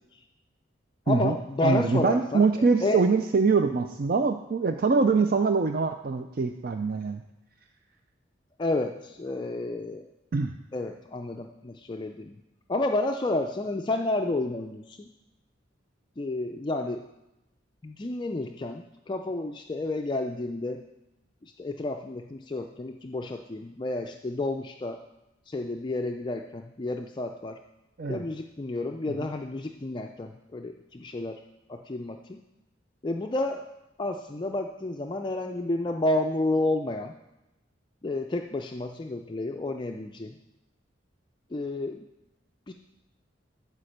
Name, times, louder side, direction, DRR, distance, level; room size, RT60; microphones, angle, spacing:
voice 1, 1.1-3.0 8.6-10.1 10.7-12.4 12.7-15.1 16.2-17.1 17.8-20.8 21.4-25.0 25.5-27.6 28.1-31.4 31.7-32.4 33.0-33.6 34.0-37.1 38.0-40.4 41.5-42.1 42.7-42.8, left 2 dB, 25° left, 3 dB, 0.4 m, -31 dB
voice 2, 1.6-7.2 10.3-10.5 28.0-28.2, right 4 dB, 50° right, 7 dB, 0.4 m, -24 dB
12.5 x 5.0 x 6.5 m, 0.98 s
head